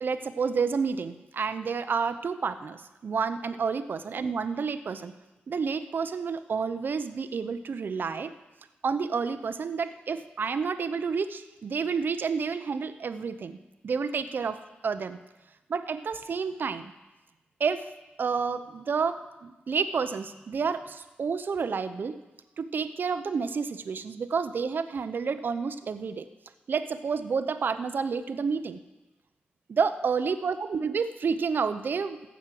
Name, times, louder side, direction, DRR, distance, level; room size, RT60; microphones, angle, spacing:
voice 1, 0.0-5.1 5.5-8.3 8.8-13.6 13.8-15.2 15.7-16.9 17.6-17.9 18.2-22.2 22.6-26.3 26.7-28.8 29.7-32.3, right 5 dB, 60° right, 11 dB, 0.6 m, -30 dB
15.0 x 6.1 x 7.6 m, 1.1 s
wide cardioid pair, 100°, 4 cm